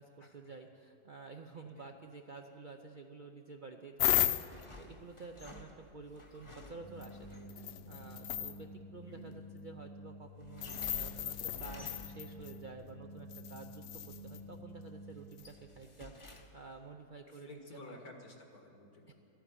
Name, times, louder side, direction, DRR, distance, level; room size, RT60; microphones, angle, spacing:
voice 1, 0.0-18.0 19.1-19.2, right 4 dB, 55° right, 3 dB, 0.5 m, -51 dB
sound 1, 4.0-4.6 7.0-7.1 7.5-8.6 10.6-12.5 13.3-14.4 15.4-15.5, left 11 dB, 90° left, 0.5 m, -35 dB
sound 2, 4.1-7.6 10.4-12.4 13.9-14.5 14.9-16.8, left 2 dB, 25° left, 0.9 m, -53 dB
sound 3, 6.8-15.1, equal, 85° right, 2.9 m, -50 dB
voice 2, 17.3-19.1, left 2 dB, 75° left, 2 dB, 2.4 m, -53 dB
13.5 x 9.6 x 9.8 m, 2.6 s
omnidirectional pair, 1.6 m